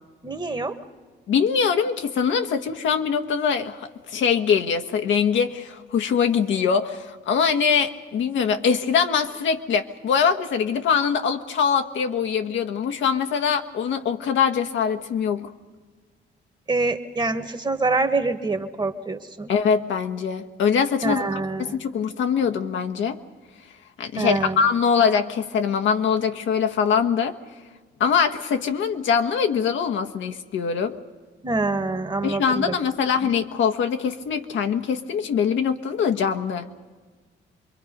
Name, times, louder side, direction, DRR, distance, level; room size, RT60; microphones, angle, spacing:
voice 1, 0.2-0.8 16.7-19.5 21.0-21.8 24.2-24.6 31.4-32.8 33.2-33.3, right 3 dB, 20° right, 8 dB, 1.5 m, -25 dB
voice 2, 1.3-15.5 19.5-23.2 24.0-27.4 28.0-31.0 32.2-36.7, left 6 dB, 75° left, 6 dB, 1.3 m, -23 dB
26.0 x 22.5 x 5.3 m, 1.4 s
cardioid pair, 90°, 20 cm